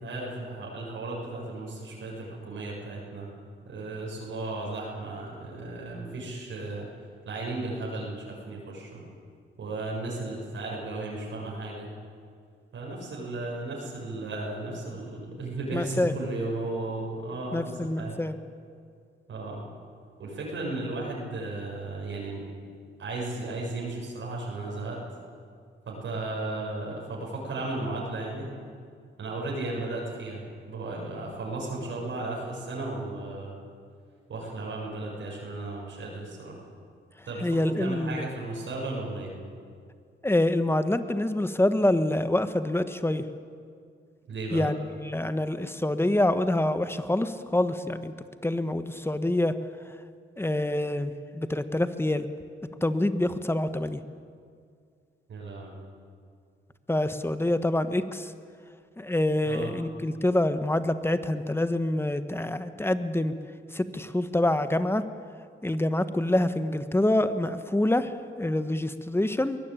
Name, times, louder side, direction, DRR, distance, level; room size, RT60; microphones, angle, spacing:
voice 1, 0.0-3.3 3.7-6.9 7.3-9.0 9.6-11.9 12.7-18.2 19.3-19.6 20.2-22.4 23.0-25.0 25.9-28.5 29.2-33.5 34.3-36.6 37.3-39.3 44.3-44.6 55.3-55.7 59.4-59.7, right 2 dB, 70° right, -3 dB, 6.8 m, -35 dB
voice 2, 15.7-16.1 17.5-18.4 37.4-38.3 40.2-43.3 44.5-48.1 48.4-49.6 50.4-52.3 52.8-54.0 56.9-58.3 59.0-63.4 63.7-65.0 65.6-68.1 68.4-69.6, left 1 dB, 10° left, 11 dB, 1.4 m, -26 dB
22.5 x 17.5 x 9.1 m, 2.2 s
cardioid pair, 70°, 20 cm